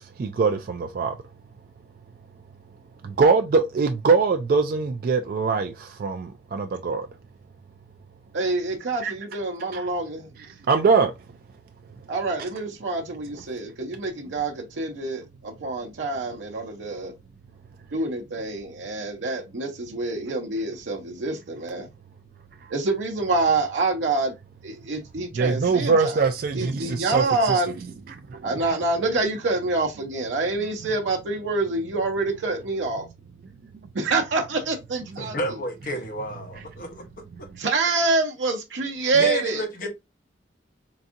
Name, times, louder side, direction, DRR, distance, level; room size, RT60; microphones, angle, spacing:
voice 1, 0.2-1.2 3.0-7.1 9.0-9.1 9.7-9.8 10.7-11.1 25.4-27.6, right 4 dB, 50° right, 0.3 m, -22 dB
voice 2, 8.3-10.3 12.1-17.1 17.9-21.9 22.7-24.3 24.6-26.2 26.6-27.8 28.4-33.0 33.9-35.4 37.6-39.6, right 3 dB, 80° right, 0.7 m, -26 dB
voice 3, 35.2-37.1 39.1-39.9, equal, 45° left, 0.9 m, -31 dB
3.9 x 2.6 x 2.4 m
head